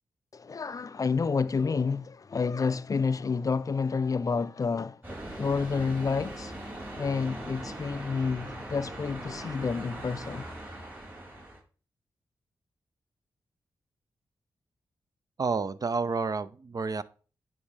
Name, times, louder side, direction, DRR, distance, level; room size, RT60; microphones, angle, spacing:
voice 1, 0.3-5.0 5.4-6.5 7.0-10.5, left 5 dB, 45° left, 0.4 m, -29 dB
sound 1, 5.0-11.6, right 1 dB, 20° right, 3.5 m, -40 dB
voice 2, 15.4-17.0, right 4 dB, 45° right, 0.5 m, -30 dB
9.4 x 3.6 x 3.3 m
supercardioid pair, 45°, 9 cm